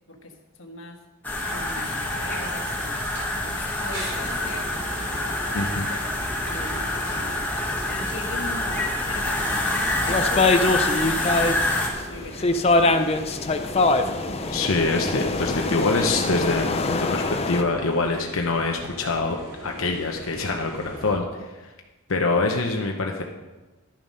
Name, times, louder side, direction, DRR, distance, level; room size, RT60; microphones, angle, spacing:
voice 1, 0.1-1.0 1.5-3.1 3.4-11.6 12.1-13.2, left 2 dB, 70° left, 4 dB, 1.5 m, -40 dB
sound 1, 1.2-11.9, left 1 dB, 10° left, 1.5 m, -27 dB
sound 2, 3.1-3.3 3.9-21.1, equal, 70° right, 4.1 m, -40 dB
voice 2, 5.5-5.9 14.5-21.7 22.1-23.2, left 3 dB, 85° left, 2 dB, 0.9 m, -25 dB
sound 3, 8.7-11.6 11.9-17.6, left 2 dB, 30° left, 0.5 m, -23 dB
11.5 x 7.3 x 5.4 m, 1.2 s
head